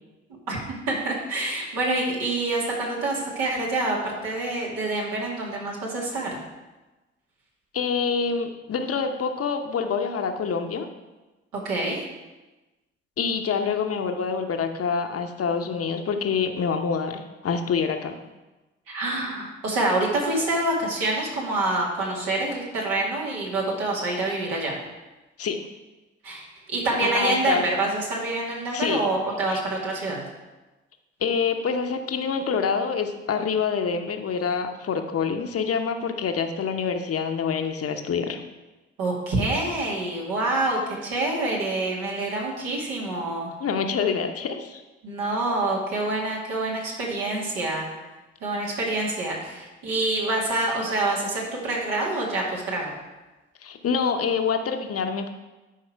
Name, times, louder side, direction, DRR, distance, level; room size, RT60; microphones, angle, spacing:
voice 1, 0.9-6.4 11.5-12.0 18.9-24.8 26.2-30.2 39.0-43.5 45.0-47.9 48.4-52.9, right 2 dB, 65° right, -3 dB, 2.3 m, -26 dB
voice 2, 7.7-10.9 13.2-18.1 25.4-25.6 27.0-27.6 28.7-29.1 29.5-29.6 31.2-38.4 43.6-44.8 53.6-55.3, left 6 dB, 40° left, 6 dB, 1.0 m, -26 dB
11.0 x 4.8 x 4.6 m, 1.1 s
figure-of-eight pair, 45°, 35 cm